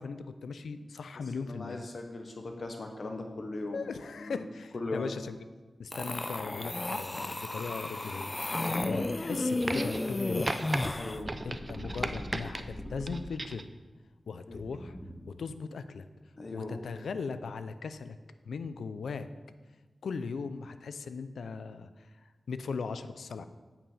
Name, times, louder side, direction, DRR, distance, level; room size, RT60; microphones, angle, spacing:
voice 1, 0.0-1.8 3.7-5.4 5.8-8.4 8.9-10.6 11.4-13.7 14.3-15.0 15.3-16.1 16.5-18.2 18.4-19.3 20.0-23.5, left 5 dB, 90° left, 11 dB, 0.4 m, -38 dB
voice 2, 1.5-3.9 4.2-4.4 4.7-5.1 8.6-8.9 10.9-11.3 14.5-14.7 16.4-16.9, left 2 dB, 55° left, 4 dB, 1.0 m, -39 dB
sound 1, 5.9-11.2, left 2 dB, 30° left, 0.5 m, -33 dB
sound 2, 9.6-10.2 10.5-10.8 11.3-12.6 13.1-13.7 14.7-14.8, right 2 dB, 35° right, 0.6 m, -36 dB
sound 3, 11.1-13.6 14.5-15.5, equal, 10° left, 1.3 m, -44 dB
8.9 x 5.7 x 5.6 m, 1.3 s
cardioid pair, 55°, 0 cm